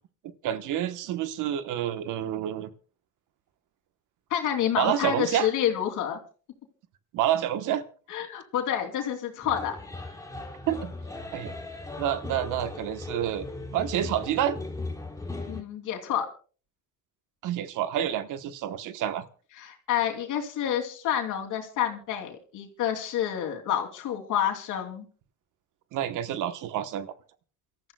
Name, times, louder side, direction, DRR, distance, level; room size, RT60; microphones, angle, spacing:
voice 1, 0.4-2.7 4.8-5.5 7.1-7.8 10.7-10.9 11.3-11.5 12.0-14.6 17.4-19.2 25.9-27.1, right 11 dB, 85° right, 11 dB, 1.2 m, -28 dB
voice 2, 4.3-6.2 8.1-9.8 15.5-16.3 19.6-25.0, left 10 dB, 85° left, 2 dB, 3.0 m, -28 dB
sound 1, 9.4-15.6, left 2 dB, 10° left, 2.6 m, -38 dB
28.5 x 13.5 x 2.3 m, 0.38 s
cardioid pair, 90°, 30 cm